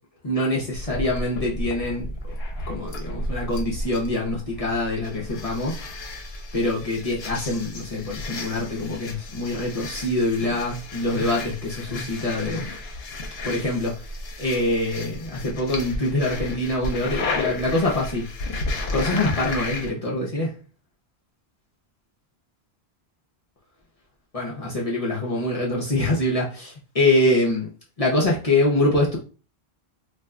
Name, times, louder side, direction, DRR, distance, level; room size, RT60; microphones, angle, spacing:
voice 1, 0.2-2.1 2.7-5.8 6.5-12.7 13.4-14.1 14.4-18.3 18.9-20.5 24.3-27.7 28.0-29.2, left 1 dB, 40° left, -3 dB, 0.7 m, -24 dB
sound 1, 0.7-19.9, left 2 dB, 70° left, 0.9 m, -33 dB
2.5 x 2.2 x 3.6 m, 0.36 s
omnidirectional pair, 1.1 m